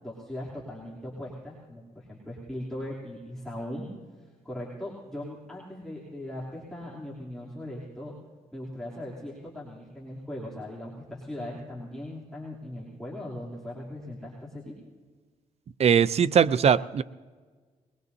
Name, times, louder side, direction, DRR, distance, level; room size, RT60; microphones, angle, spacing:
voice 1, 0.0-3.9 4.4-8.1 8.5-14.7, left 1 dB, 5° left, -7 dB, 3.0 m, -39 dB
voice 2, 15.8-17.0, right 7 dB, 45° right, 16 dB, 0.5 m, -20 dB
21.5 x 20.0 x 2.7 m, 1.5 s
cardioid pair, 95°, 14 cm